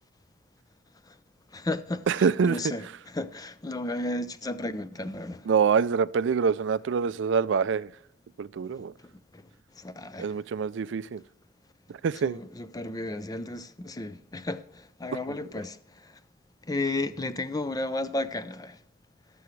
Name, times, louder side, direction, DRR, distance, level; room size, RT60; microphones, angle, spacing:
voice 1, 1.5-2.1 2.4-5.5 9.3-9.4 9.7-10.3 12.2-16.2 16.6-18.8, left 2 dB, 20° left, 0.5 m, -33 dB
voice 2, 2.1-2.6 5.5-7.9 8.4-8.9 10.2-11.2 11.9-12.4, right 6 dB, 60° right, 0.4 m, -25 dB
17.0 x 7.0 x 3.2 m
head